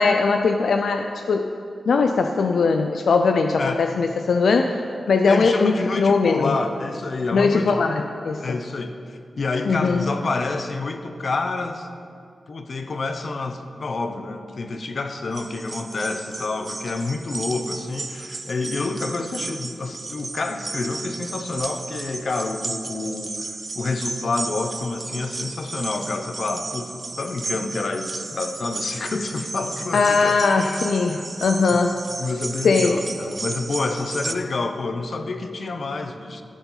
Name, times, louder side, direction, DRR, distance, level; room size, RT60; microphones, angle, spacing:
voice 1, 0.0-1.5 1.9-4.8 5.1-6.6 7.3-8.6 9.6-10.1 29.9-32.0 32.6-33.0, left 4 dB, 80° left, 6 dB, 0.4 m, -20 dB
voice 2, 5.3-7.8 8.4-11.9 12.5-30.8 31.1-31.2 31.7-31.8 32.2-36.4, left 3 dB, 55° left, 7 dB, 0.7 m, -28 dB
sound 1, 15.3-34.3, right 3 dB, 35° right, 0.4 m, -34 dB
15.5 x 7.1 x 4.0 m, 2.4 s
wide cardioid pair, 120°, 0 cm